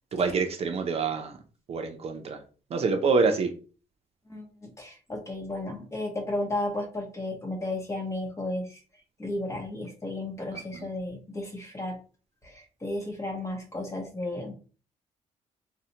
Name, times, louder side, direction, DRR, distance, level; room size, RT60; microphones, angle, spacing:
voice 1, 0.1-1.4 1.7-2.4 2.7-3.5 10.5-10.9, right 4 dB, 45° right, 5 dB, 0.5 m, -26 dB
voice 2, 4.3-8.8 9.2-12.0 12.4-14.5, left 1 dB, 20° left, 2 dB, 0.8 m, -33 dB
4.0 x 2.1 x 2.8 m, 0.37 s
cardioid pair, 145°, 14 cm